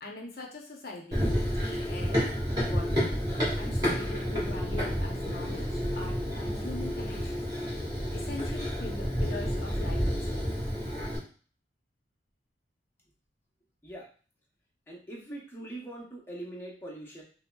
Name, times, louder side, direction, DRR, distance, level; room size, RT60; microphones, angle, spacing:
voice 1, 0.0-1.2 1.5-2.2 2.6-3.1 3.6-7.5 8.1-10.4, left 2 dB, 55° left, 0 dB, 0.6 m, -42 dB
Run, 1.1-11.2, equal, 25° right, 1.5 m, -30 dB
voice 2, 14.9-17.2, right 1 dB, 10° left, -4 dB, 0.7 m, -42 dB
5.3 x 2.0 x 2.2 m, 0.41 s
head